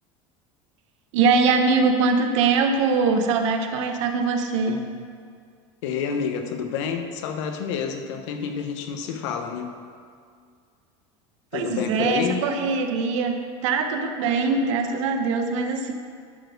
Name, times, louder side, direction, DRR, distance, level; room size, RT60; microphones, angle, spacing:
voice 1, 1.1-4.8 11.5-13.3 13.6-15.9, right 4 dB, 85° right, 5 dB, 1.0 m, -22 dB
voice 2, 5.8-9.8 11.5-12.5, left 6 dB, 80° left, 6 dB, 1.0 m, -29 dB
11.0 x 4.3 x 6.7 m, 2.2 s
cardioid pair, 160°, 15 cm